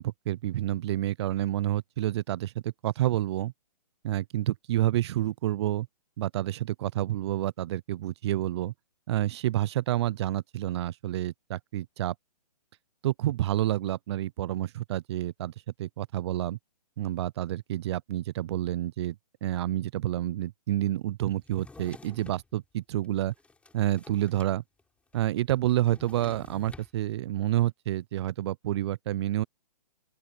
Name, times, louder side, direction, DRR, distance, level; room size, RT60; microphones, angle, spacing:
voice 1, 0.0-3.5 4.0-5.9 6.2-8.7 9.1-12.1 13.0-15.5 15.8-16.6 17.0-19.2 19.4-23.3 23.7-24.6 25.1-29.4, right 14 dB, 40° right, 0.6 m, -29 dB
Drawer open or close, 21.4-22.5 23.0-24.5 24.8-24.9 25.1-26.9, left 3 dB, 5° left, 4.4 m, -50 dB
open air
hypercardioid pair, 145°, 21 cm